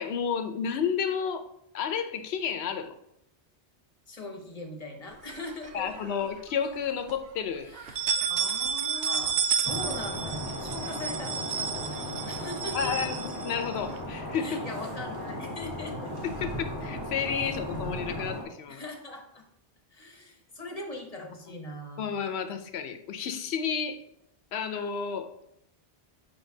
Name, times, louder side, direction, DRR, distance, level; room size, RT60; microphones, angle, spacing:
voice 1, 0.0-1.5 1.7-2.9 5.7-7.7 12.7-14.7 16.4-18.8 22.0-24.0 24.5-25.3, left 7 dB, 75° left, 9 dB, 0.9 m, -31 dB
voice 2, 4.1-5.9 7.6-9.4 9.6-12.9 14.4-16.1 18.7-19.4 19.9-22.1, left 2 dB, 35° left, 2 dB, 1.0 m, -41 dB
sound 1, 5.3-6.2 6.6-6.7 7.1-7.2 7.8-14.0, right 7 dB, 85° right, 0.9 m, -31 dB
sound 2, 9.6-18.4, left 1 dB, 20° right, 1.2 m, -36 dB
7.1 x 5.5 x 2.7 m, 0.79 s
omnidirectional pair, 1.1 m